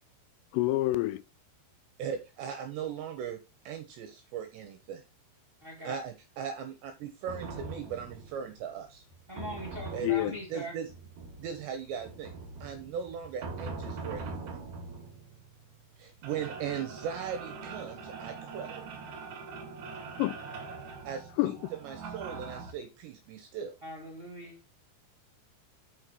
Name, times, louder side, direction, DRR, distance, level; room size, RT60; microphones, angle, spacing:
voice 1, 0.5-1.2 10.0-10.3 20.2-20.4 21.4-21.6, left 17 dB, 85° left, 3.0 m, -27 dB
voice 2, 2.0-3.4 3.7-5.0 5.8-9.0 9.9-10.1 10.5-10.9 11.4-12.3 12.6-14.6 16.0-18.9 21.0-23.8, right 8 dB, 80° right, 2.6 m, -38 dB
voice 3, 5.6-6.0 9.3-10.7 23.8-24.6, equal, 30° right, 1.0 m, -41 dB
sound 1, 7.3-22.7, right 4 dB, 60° right, 2.2 m, -43 dB
6.6 x 6.4 x 4.5 m
omnidirectional pair, 5.9 m